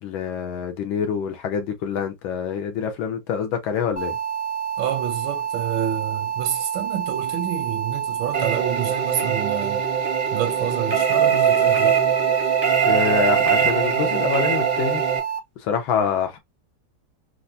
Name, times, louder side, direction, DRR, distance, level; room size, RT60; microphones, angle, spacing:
voice 1, 0.0-4.2 12.8-15.0 15.6-16.4, left 7 dB, 80° left, 1.6 m, -26 dB
sound 1, 4.0-15.4, right 9 dB, 30° left, 0.8 m, -28 dB
voice 2, 4.8-9.8 10.3-12.0, right 10 dB, 85° right, 1.4 m, -28 dB
sound 2, 8.3-15.2, right 7 dB, 45° right, 0.6 m, -22 dB
4.6 x 2.1 x 2.6 m
omnidirectional pair, 2.1 m